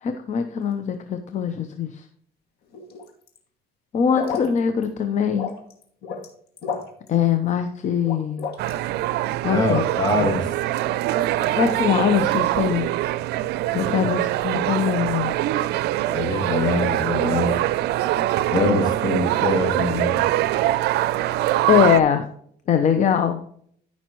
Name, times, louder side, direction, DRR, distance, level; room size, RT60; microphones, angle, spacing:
voice 1, 0.0-2.0 3.9-5.5 7.1-8.5 9.4-9.8 10.2-10.4 11.6-12.9 13.7-15.3 21.7-22.3 22.7-23.4, left 8 dB, 45° left, 8 dB, 0.8 m, -22 dB
sound 1, 2.7-3.4 4.0-4.5 4.8-4.9 5.3-6.3 6.6-7.1 8.0-8.8 9.7-9.8, left 6 dB, 70° left, 2.2 m, -31 dB
sound 2, 8.6-22.0, right 14 dB, 80° right, 0.5 m, -23 dB
voice 2, 9.5-10.5 16.1-17.6 18.5-20.2, left 2 dB, 25° left, 3 dB, 2.4 m, -23 dB
14.0 x 5.7 x 3.1 m, 0.63 s
cardioid pair, 110°, 17 cm